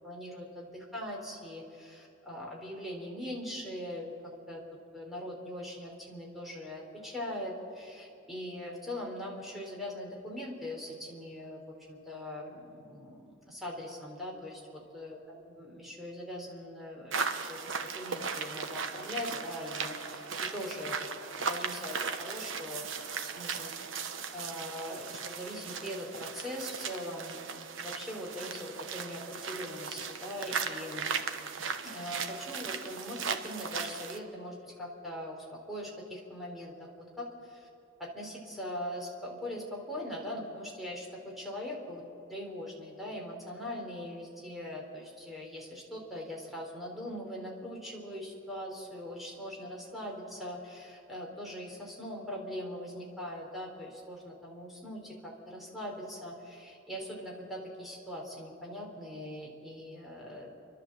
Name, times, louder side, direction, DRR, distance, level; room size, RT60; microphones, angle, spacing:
voice 1, 0.0-4.6 4.9-11.6 11.9-17.7 18.0-21.1 21.3-23.0 23.2-23.9 24.3-31.1 31.8-37.7 38.0-42.0 42.3-60.5, left 1 dB, ahead, -2 dB, 3.8 m, -41 dB
sound 1, 17.1-34.2, right 5 dB, 70° right, 1.1 m, -37 dB
29.5 x 12.0 x 7.5 m, 2.6 s
head